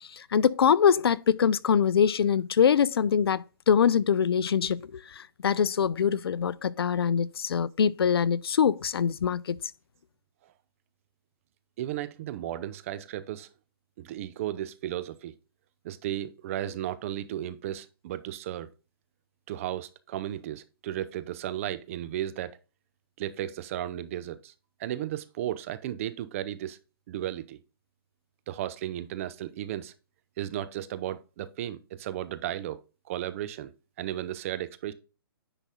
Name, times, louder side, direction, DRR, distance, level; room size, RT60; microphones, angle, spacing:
voice 1, 0.0-9.6, left 7 dB, 80° left, 0.5 m, -24 dB
voice 2, 11.8-13.5 14.0-15.3 15.8-18.7 19.5-22.6 23.2-24.5 24.8-26.8 27.1-27.6 28.5-29.9 30.4-32.8 33.1-33.7 34.0-34.9, right 12 dB, 35° right, 0.6 m, -34 dB
10.0 x 4.1 x 3.7 m
hypercardioid pair, 155°, 13 cm